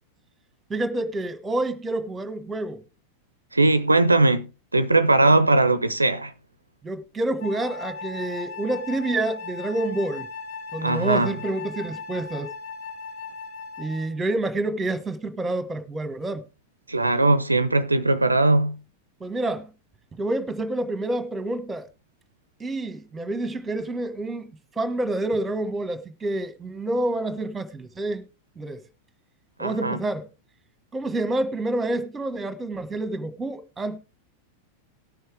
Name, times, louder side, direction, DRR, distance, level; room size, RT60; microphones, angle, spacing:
voice 1, 0.7-2.8 5.2-5.4 6.8-10.3 10.7-12.5 13.8-16.4 19.2-19.7 20.1-21.9 22.6-28.2 28.6-28.8 29.6-30.3 30.9-34.0, right 2 dB, 15° right, 1.4 m, -28 dB
voice 2, 3.5-6.3 10.8-11.4 16.9-18.8 29.6-30.0, right 2 dB, 80° right, 0.5 m, -20 dB
Wind instrument woodwind instrument, 7.4-14.2, left 4 dB, 50° left, 1.9 m, -37 dB
18.5 x 6.4 x 3.5 m
figure-of-eight pair, 90°, 0 cm